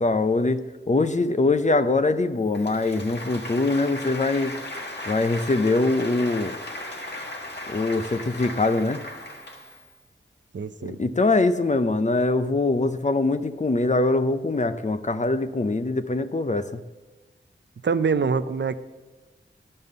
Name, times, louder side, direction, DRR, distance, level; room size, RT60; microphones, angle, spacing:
voice 1, 0.0-4.5 5.1-6.6 7.7-9.0 10.8-16.8, left 2 dB, 35° left, 11 dB, 0.6 m, -23 dB
Applause, 2.5-9.9, left 1 dB, 55° left, 1.5 m, -37 dB
voice 2, 10.5-11.0 17.8-18.7, right 5 dB, 60° right, 12 dB, 0.5 m, -24 dB
12.0 x 5.5 x 6.7 m, 1.2 s
wide cardioid pair, 70°, 21 cm